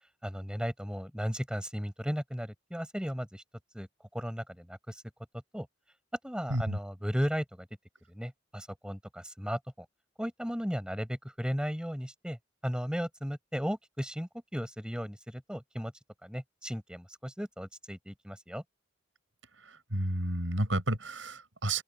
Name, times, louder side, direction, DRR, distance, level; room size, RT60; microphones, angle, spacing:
voice 1, 0.2-3.4 3.7-3.9 4.1-5.0 5.5-5.7 6.2-7.7 8.1-9.8 10.2-12.4 12.6-15.9 16.2-18.6, equal, 5° right, 6.5 m, -35 dB
voice 2, 19.7-21.8, right 1 dB, 90° right, 7.7 m, -31 dB
open air
head